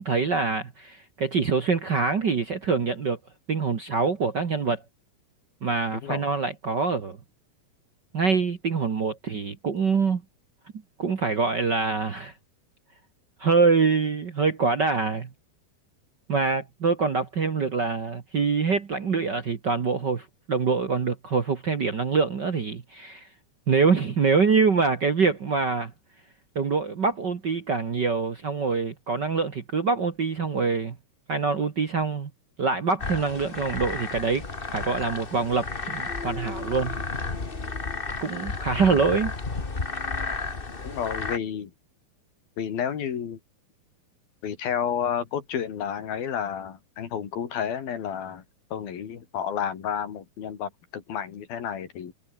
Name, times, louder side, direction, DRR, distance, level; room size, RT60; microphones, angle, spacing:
voice 1, 0.0-3.2 3.5-4.8 5.6-7.2 8.1-10.2 11.0-12.3 13.4-15.3 16.3-23.2 23.7-25.9 26.5-30.9 31.3-32.3 32.6-34.4 34.7-36.9 38.2-39.3, right 4 dB, 45° right, 1.5 m, -25 dB
sound 1, 33.0-41.4, left 3 dB, 25° left, 1.2 m, -32 dB
voice 2, 40.8-41.7 42.6-43.4 44.4-48.4 48.7-52.1, left 8 dB, 90° left, 4.8 m, -31 dB
omnidirectional pair, 4.1 m